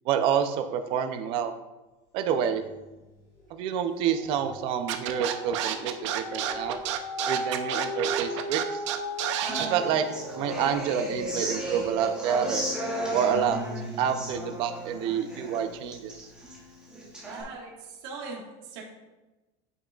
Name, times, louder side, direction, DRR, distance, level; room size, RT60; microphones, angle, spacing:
voice 1, 0.1-1.5 2.1-2.6 3.5-6.8 7.3-8.8 9.6-10.0 10.4-12.6 13.1-13.6 14.0-16.1, right 8 dB, 35° right, 8 dB, 0.5 m, -28 dB
sound 1, 2.5-3.0 3.4-15.9 16.4-16.5, equal, 30° left, 1.6 m, -38 dB
Scratching (performance technique), 4.9-9.7, right 11 dB, 85° right, 0.6 m, -30 dB
Human voice / Acoustic guitar, 9.4-17.4, right 1 dB, 5° right, 0.9 m, -35 dB
voice 2, 17.2-18.8, right 4 dB, 60° right, -2 dB, 1.6 m, -40 dB
8.2 x 6.0 x 2.4 m, 1.1 s
cardioid pair, 175°, 15 cm